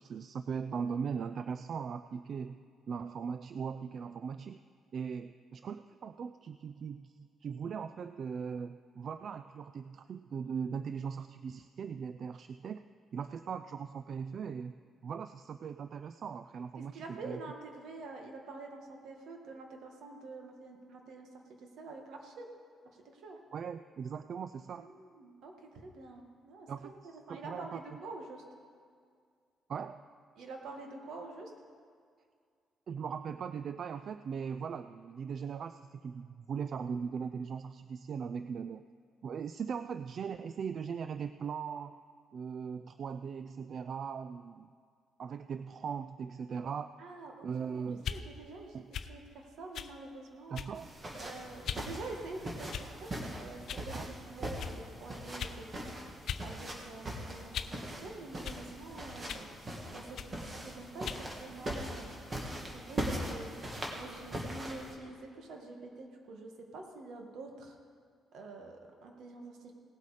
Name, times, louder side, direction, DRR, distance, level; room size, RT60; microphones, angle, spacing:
voice 1, 0.0-2.6 2.9-4.6 4.9-12.8 13.1-14.7 15.0-17.4 23.5-24.9 26.7-27.8 29.7-30.0 32.9-38.8 39.2-42.0 42.3-44.7 45.2-46.9 47.4-48.1 48.7-48.9 50.5-50.9 53.9-54.1, right 6 dB, 55° right, 11 dB, 0.3 m, -39 dB
voice 2, 16.9-21.3 21.6-22.5 23.1-23.4 24.8-26.9 27.3-28.4 30.4-31.5 47.0-47.7 48.1-48.8 49.1-50.7 51.1-53.1 53.4-67.8 68.3-69.7, right 3 dB, 75° right, 3 dB, 1.6 m, -47 dB
sound 1, 48.0-48.2 48.9-49.1 49.7-49.9 50.5-50.9 51.6-51.9 52.7-53.1 53.7-53.9 54.6-54.8 55.4-55.6 56.3-56.5 56.8-57.8 58.4-58.6 59.3-59.5 60.2-60.4 61.0-61.3, left 8 dB, 70° left, 0.5 m, -39 dB
sound 2, 50.7-65.0, right 1 dB, 35° right, 2.0 m, -41 dB
18.0 x 8.2 x 4.9 m, 2.1 s
cardioid pair, 90°, 0 cm